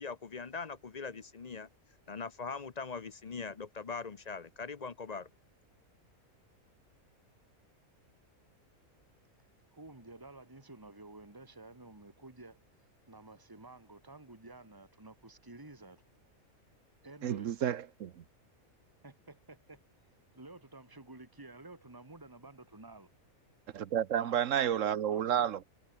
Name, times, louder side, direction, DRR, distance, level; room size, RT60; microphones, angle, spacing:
voice 1, 0.0-1.7 2.1-5.3, left 4 dB, 35° left, 0.8 m, -41 dB
voice 2, 9.7-12.6 13.1-16.0 17.0-17.5 19.0-19.8 20.3-23.1 24.2-24.5 25.1-25.7, right 2 dB, 15° right, 2.5 m, -52 dB
voice 3, 17.2-18.2 23.7-25.6, right 9 dB, 65° right, 1.2 m, -31 dB
omnidirectional pair, 1.5 m